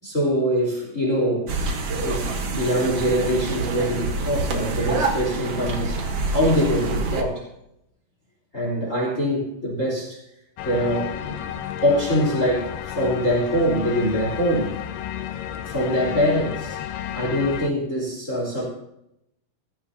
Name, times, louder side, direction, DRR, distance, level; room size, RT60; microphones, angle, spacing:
voice 1, 0.0-1.5 1.9-6.0 6.3-7.4 8.5-10.2 10.6-14.8 15.7-16.8 17.1-18.7, equal, 20° left, -3 dB, 3.8 m, -23 dB
sound 1, 1.5-7.2, right 3 dB, 80° right, 1.3 m, -27 dB
sound 2, 10.6-17.7, left 10 dB, 85° left, 2.0 m, -32 dB
18.5 x 14.5 x 2.9 m, 0.81 s
omnidirectional pair, 4.9 m